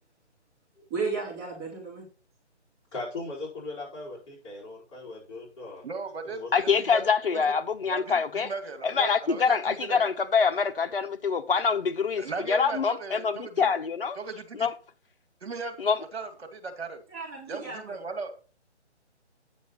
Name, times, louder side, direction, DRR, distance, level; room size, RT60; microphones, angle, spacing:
voice 1, 0.7-2.1 17.1-18.0, right 4 dB, 20° right, 3.8 m, -34 dB
voice 2, 2.9-5.8 6.4-6.5, left 2 dB, 25° left, 4.8 m, -38 dB
voice 3, 5.8-7.0 7.3-7.5 7.9-10.1 12.2-13.7 14.2-14.7 15.4-15.8 16.1-17.0 17.5-18.3, right 4 dB, 60° right, 2.3 m, -37 dB
voice 4, 6.5-8.5 8.8-14.2 14.6-14.7 15.8-16.0, left 5 dB, 50° left, 1.2 m, -25 dB
9.5 x 7.0 x 4.1 m
hypercardioid pair, 165°, 35 cm